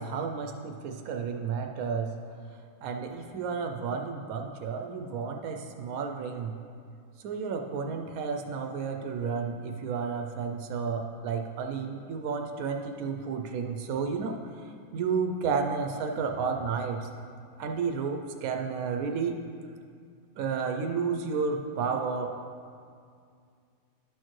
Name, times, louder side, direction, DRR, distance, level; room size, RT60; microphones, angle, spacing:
voice 1, 0.0-2.1 2.8-6.5 7.2-17.1 17.6-19.4 20.4-22.3, right 5 dB, 85° right, 3 dB, 1.0 m, -32 dB
11.0 x 6.4 x 3.1 m, 2.3 s
omnidirectional pair, 1.5 m